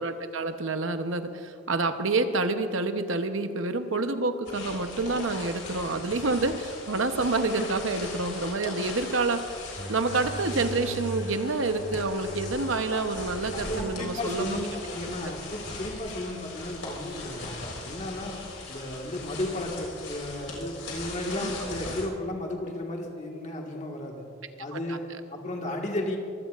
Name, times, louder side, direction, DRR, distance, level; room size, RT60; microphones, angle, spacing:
voice 1, 0.0-9.5 9.9-14.6 21.3-21.9 24.7-25.0, right 3 dB, 75° right, 8 dB, 0.9 m, -28 dB
sound 1, 4.4-22.0, left 3 dB, 65° left, 4.3 m, -39 dB
sound 2, 9.8-17.8, right 2 dB, 10° right, 0.7 m, -42 dB
voice 2, 13.5-18.4 18.7-24.2 24.6-25.0 25.3-26.2, left 1 dB, 35° left, 0 dB, 1.7 m, -34 dB
24.5 x 16.0 x 2.5 m, 2.5 s
head